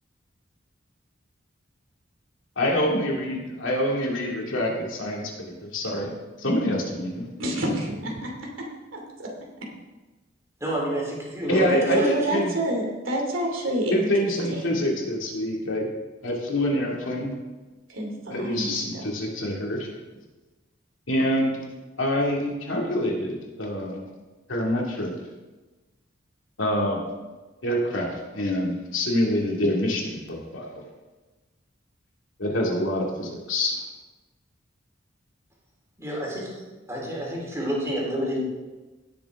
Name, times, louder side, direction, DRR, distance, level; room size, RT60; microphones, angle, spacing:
voice 1, 2.6-6.1 6.4-7.3 11.5-12.5 13.9-15.9 16.2-17.4 18.3-19.9 21.1-21.6 22.0-24.1 24.5-25.1 26.6-27.1 27.6-30.8 32.4-33.7, left 1 dB, 80° left, -1 dB, 2.4 m, -26 dB
voice 2, 7.4-8.7 8.9-9.3 11.6-14.9 17.9-19.1, right 1 dB, 85° right, 0 dB, 2.6 m, -28 dB
voice 3, 10.6-12.1 36.0-36.5 36.9-38.4, equal, 15° right, -4 dB, 3.5 m, -29 dB
17.0 x 7.0 x 3.7 m, 1.2 s
head